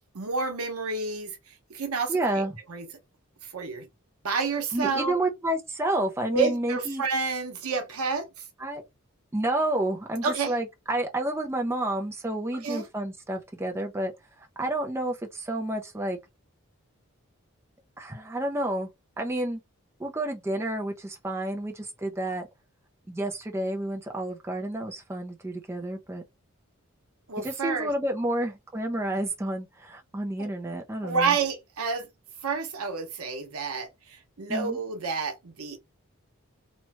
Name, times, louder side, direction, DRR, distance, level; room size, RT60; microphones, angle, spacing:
voice 1, 0.1-1.4 1.7-2.4 2.7-2.9 3.5-3.9 4.2-5.2 6.3-8.3 10.2-10.5 12.5-12.8 27.3-27.9 30.4-30.5 31.0-32.1 32.4-35.8, right 4 dB, 90° right, 0.9 m, -29 dB
voice 2, 2.1-2.5 4.7-7.0 8.6-8.8 9.3-14.1 14.6-16.2 18.0-18.9 19.2-19.6 20.0-22.5 23.1-26.2 27.4-31.4 34.5-34.8, right 1 dB, 10° right, 0.4 m, -30 dB
3.0 x 2.2 x 2.8 m
head